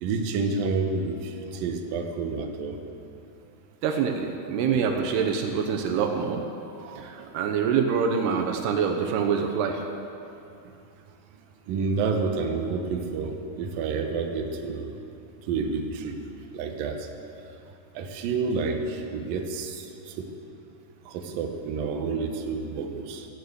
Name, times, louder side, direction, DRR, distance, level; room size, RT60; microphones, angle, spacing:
voice 1, 0.0-2.8 11.7-15.0 15.5-16.2 16.5-17.1 18.0-20.3 21.1-23.3, right 4 dB, 70° right, 3 dB, 2.6 m, -29 dB
voice 2, 3.8-6.4 6.7-9.8, right 6 dB, 85° right, 3 dB, 2.9 m, -25 dB
13.0 x 9.2 x 8.1 m, 2.6 s
omnidirectional pair, 4.7 m